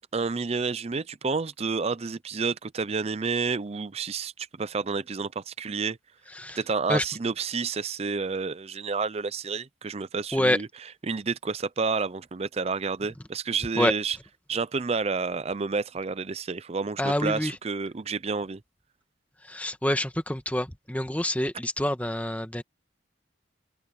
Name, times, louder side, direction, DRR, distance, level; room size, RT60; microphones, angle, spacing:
voice 1, 0.1-6.0 6.6-10.7 11.0-14.2 14.5-18.6, right 4 dB, 35° right, 0.5 m, -30 dB
voice 2, 17.0-17.6 19.4-22.6, left 1 dB, 10° left, 1.5 m, -27 dB
open air
head